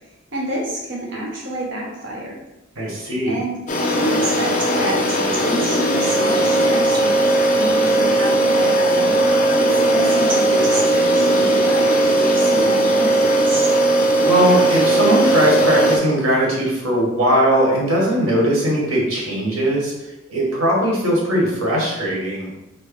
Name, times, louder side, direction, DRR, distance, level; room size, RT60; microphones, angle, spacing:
voice 1, 0.3-2.4 3.2-9.2 9.6-13.7, right 1 dB, 55° right, -2 dB, 1.1 m, -28 dB
voice 2, 2.8-3.4 14.2-19.9 20.3-22.5, equal, 75° right, -3 dB, 1.4 m, -19 dB
sound 1, 3.7-16.0, right 1 dB, 35° left, 0.6 m, -17 dB
4.6 x 2.1 x 4.7 m, 0.96 s
head